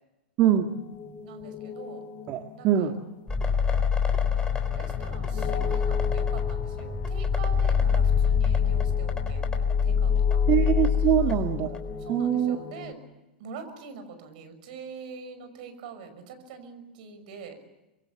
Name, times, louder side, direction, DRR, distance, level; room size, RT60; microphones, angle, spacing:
voice 1, 0.4-0.7 2.3-2.9 10.5-11.7 12.1-12.6, right 10 dB, 40° right, 6 dB, 1.8 m, -23 dB
sound 1, 0.6-12.9, left 4 dB, 40° left, 2.4 m, -40 dB
voice 2, 1.2-2.1 2.5-2.9 4.7-10.5 11.2-11.4 12.0-13.0 13.4-17.6, right 6 dB, 60° right, 8 dB, 5.9 m, -44 dB
sound 2, 3.3-11.9, left 7 dB, 15° left, 3.9 m, -25 dB
26.0 x 23.0 x 8.2 m, 1.0 s
hypercardioid pair, 100°, 5 cm